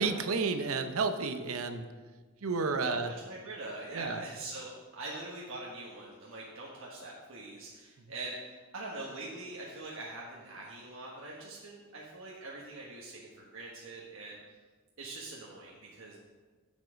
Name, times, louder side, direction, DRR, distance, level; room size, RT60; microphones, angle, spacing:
voice 1, 0.0-1.9 2.4-3.1 3.9-4.2, right 4 dB, 85° right, 8 dB, 0.7 m, -31 dB
voice 2, 2.8-14.4 15.0-16.2, right 2 dB, 65° right, -4 dB, 1.4 m, -43 dB
7.8 x 7.4 x 5.1 m, 1.4 s
head